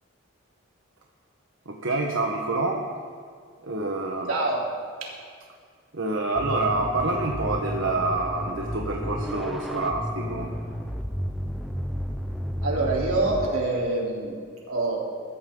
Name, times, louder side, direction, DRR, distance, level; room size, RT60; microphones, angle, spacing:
voice 1, 1.6-3.0 3.6-4.3 5.9-10.5, right 2 dB, 75° right, 0 dB, 1.4 m, -27 dB
voice 2, 4.3-4.7 5.0-5.2 12.6-15.0, right 2 dB, 90° right, -3 dB, 3.8 m, -26 dB
sound 1, 6.4-13.5, equal, ahead, 0.7 m, -32 dB
22.0 x 14.5 x 3.9 m, 2.1 s
head